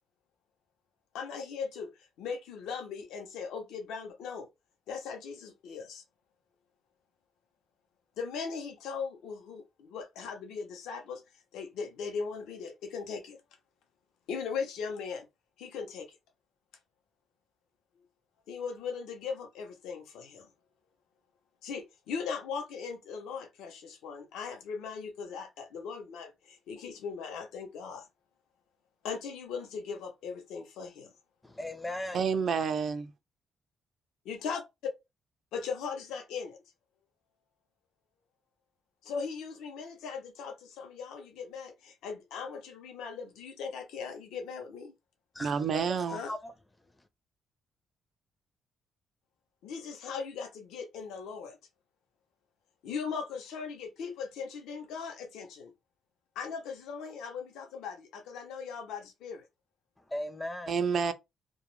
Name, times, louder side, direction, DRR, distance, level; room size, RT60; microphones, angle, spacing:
voice 1, 1.1-1.9 2.2-4.5 4.9-6.0 8.2-11.2 11.5-13.4 14.3-15.2 15.6-16.1 18.5-20.5 21.6-28.1 29.0-31.1 34.3-34.6 35.5-36.6 39.0-44.9 46.1-46.3 49.6-51.6 52.8-55.7 56.4-59.4, left 5 dB, 85° left, 0.6 m, -39 dB
voice 2, 31.4-32.2 45.3-46.5 60.1-60.8, left 1 dB, 15° left, 0.4 m, -38 dB
voice 3, 32.1-33.1 45.4-46.2 60.7-61.1, right 6 dB, 55° right, 0.4 m, -29 dB
2.2 x 2.0 x 3.0 m
cardioid pair, 90°, 0 cm